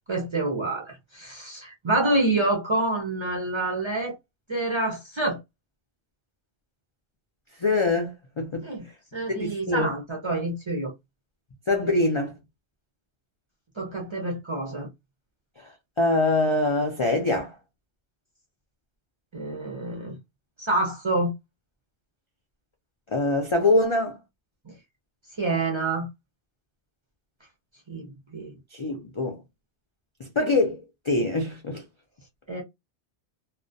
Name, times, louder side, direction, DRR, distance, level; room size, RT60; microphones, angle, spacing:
voice 1, 0.1-4.2 4.5-5.4 8.6-8.9 9.1-10.9 13.8-14.9 19.3-20.2 20.6-21.3 24.7-24.8 25.4-26.1 27.9-28.5 32.5-32.6, right 2 dB, 35° right, 0.4 m, -27 dB
voice 2, 7.6-8.7 9.3-9.9 11.7-12.3 15.6-15.7 16.0-17.5 23.1-24.2 28.7-29.4 30.2-31.8, left 2 dB, 55° left, 0.3 m, -24 dB
2.3 x 2.1 x 2.5 m
omnidirectional pair, 1.2 m